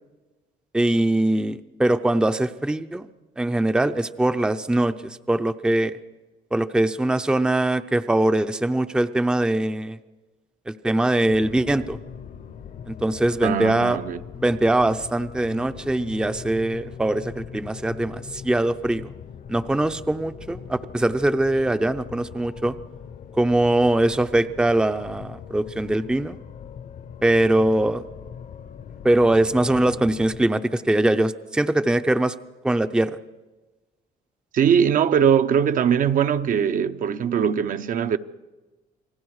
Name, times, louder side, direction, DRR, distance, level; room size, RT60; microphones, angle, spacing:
voice 1, 0.7-3.1 3.4-5.9 6.5-10.0 10.7-12.0 12.9-14.0 14.4-19.1 19.5-22.8 23.3-26.4 27.2-28.0 29.0-32.3 32.6-33.2, right 1 dB, 5° right, 0.6 m, -22 dB
sound 1, 11.3-30.5, left 7 dB, 50° left, 0.9 m, -40 dB
voice 2, 13.4-14.2 34.5-38.2, right 8 dB, 55° right, 0.8 m, -21 dB
28.5 x 19.0 x 4.8 m
cardioid pair, 110°, 17 cm